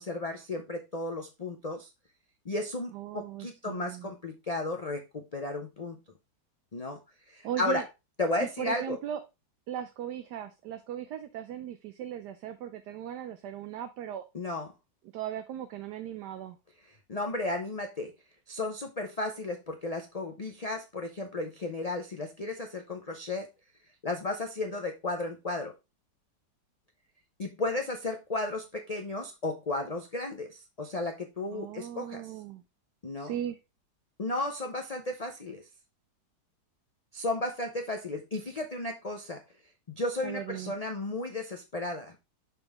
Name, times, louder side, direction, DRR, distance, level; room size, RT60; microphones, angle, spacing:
voice 1, 0.0-1.9 2.5-6.0 6.7-7.0 7.3-7.8 8.2-9.0 14.3-14.7 17.1-18.1 18.5-23.5 24.0-25.7 27.4-32.2 33.0-33.3 34.2-35.6 37.1-39.4 40.0-42.1, left 2 dB, 55° left, 4 dB, 0.4 m, -34 dB
voice 2, 2.9-4.1 7.4-7.9 8.4-9.2 9.7-14.2 15.1-16.6 31.5-32.6 33.2-33.6 40.2-40.7, right 10 dB, 75° right, 9 dB, 1.2 m, -38 dB
6.0 x 5.4 x 3.4 m, 0.25 s
omnidirectional pair, 1.9 m